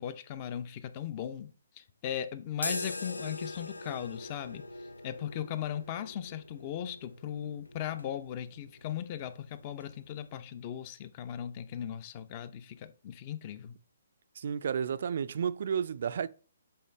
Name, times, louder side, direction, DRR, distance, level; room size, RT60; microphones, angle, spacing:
voice 1, 0.0-1.5 1.8-4.7 5.0-13.8, left 10 dB, 35° left, 0.6 m, -38 dB
sound 1, 2.5-10.3, left 2 dB, 85° left, 0.6 m, -43 dB
voice 2, 14.4-16.3, right 7 dB, 55° right, 0.3 m, -32 dB
7.8 x 3.8 x 3.3 m
figure-of-eight pair, 135°, 0 cm